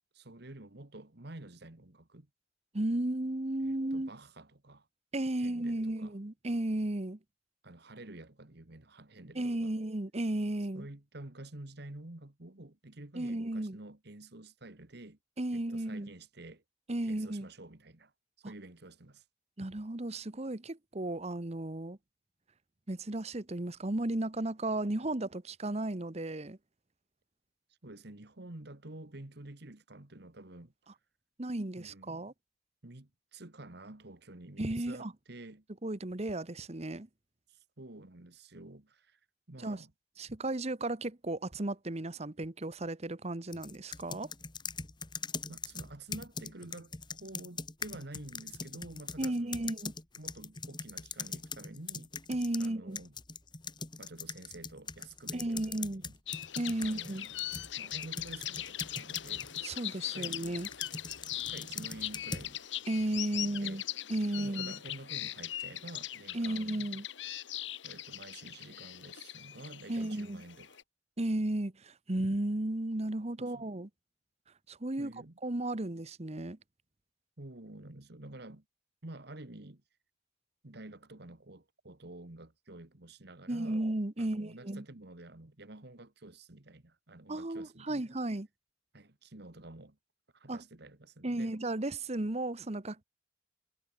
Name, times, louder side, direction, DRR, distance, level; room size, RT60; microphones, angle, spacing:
voice 1, 0.1-2.3 3.6-4.9 5.4-6.1 7.6-9.7 10.7-15.2 15.5-16.6 17.0-18.1 18.4-19.2 27.8-30.7 31.8-32.2 32.8-35.6 37.5-39.2 39.5-39.9 45.5-46.9 47.2-49.7 50.2-52.1 52.6-53.2 54.0-56.1 56.8-57.3 57.8-59.5 59.9-60.4 61.3-62.6 63.4-63.8 64.4-66.9 67.8-70.8 73.4-73.7 75.0-75.4 77.4-78.6 79.0-79.8 80.6-83.8 84.2-88.0 88.9-90.0 90.3-91.5, right 2 dB, 60° right, 1.8 m, -49 dB
voice 2, 2.7-4.1 5.1-7.2 9.3-10.9 13.1-13.8 15.4-16.1 16.9-17.5 18.4-18.5 19.6-22.0 22.9-26.6 31.4-32.3 34.6-35.1 35.8-37.1 39.6-39.8 40.2-44.3 49.2-49.9 52.3-53.0 55.3-56.0 56.6-57.3 59.6-60.7 62.9-63.8 64.1-64.8 66.3-67.1 69.9-70.4 71.2-73.9 74.7-75.1 75.4-76.6 83.5-84.8 87.3-88.5 90.5-90.6 91.2-93.0, right 1 dB, 35° right, 1.1 m, -34 dB
sound 1, 43.5-52.7 53.0-59.6 60.2-62.5, left 5 dB, 25° left, 1.7 m, -42 dB
sound 2, 56.3-70.8, left 13 dB, 70° left, 1.4 m, -40 dB
head